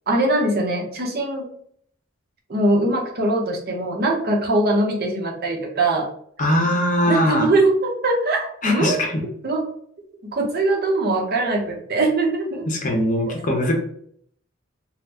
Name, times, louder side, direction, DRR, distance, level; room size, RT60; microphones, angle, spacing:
voice 1, 0.1-1.4 2.5-6.1 7.0-9.0 9.4-9.6 10.3-12.7, right 2 dB, 50° right, 0 dB, 0.7 m, -21 dB
voice 2, 6.4-7.5 8.6-9.2 12.7-13.8, left 1 dB, 40° left, 2 dB, 0.7 m, -21 dB
3.9 x 2.0 x 2.7 m, 0.63 s
head